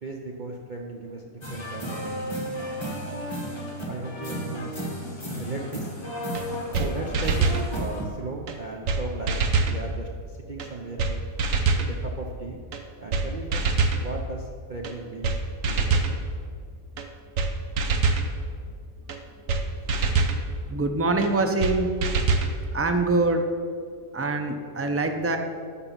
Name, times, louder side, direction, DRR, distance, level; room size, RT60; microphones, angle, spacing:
voice 1, 0.0-2.2 3.9-4.7 5.3-5.9 6.8-7.5 7.7-11.2 11.8-12.6 13.0-13.6 13.9-15.4 15.7-16.3, right 3 dB, 45° right, 0 dB, 0.7 m, -36 dB
sound 1, 1.4-8.0, equal, 20° left, 1.6 m, -33 dB
sound 2, 6.3-6.4 6.7-6.9 7.1-7.6 8.5-8.6 8.9-9.0 9.3-9.8 10.6-10.7 11.0-11.1 11.4-11.9 12.7-12.8 13.1-13.3 13.5-14.0 14.8-14.9 15.2-15.4 15.6-16.1 17.0-17.1 17.4-17.5 17.8-18.3 19.1-19.2 19.5-19.6 19.9-20.4 21.2-21.3 21.6-21.7 22.0-22.5, right 4 dB, 70° right, 1.2 m, -23 dB
voice 2, 20.7-21.9 22.7-23.4 24.1-25.4, right 3 dB, 20° right, 5 dB, 0.3 m, -24 dB
12.5 x 4.4 x 7.3 m, 2.2 s
omnidirectional pair, 1.4 m